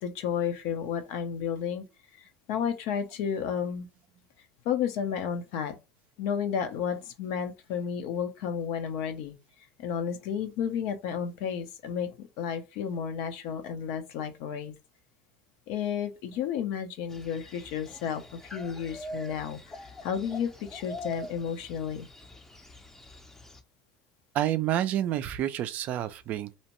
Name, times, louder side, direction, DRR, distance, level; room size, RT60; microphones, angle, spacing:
voice 1, 0.0-1.8 2.2-3.9 4.6-5.8 6.2-9.3 9.8-14.7 15.7-19.8 20.0-22.1, left 8 dB, 65° left, 0.6 m, -32 dB
sound 1, 17.1-23.6, left 1 dB, 10° left, 0.5 m, -44 dB
voice 2, 24.3-26.6, right 12 dB, 50° right, 0.3 m, -29 dB
2.7 x 2.1 x 2.9 m
supercardioid pair, 95°, 3 cm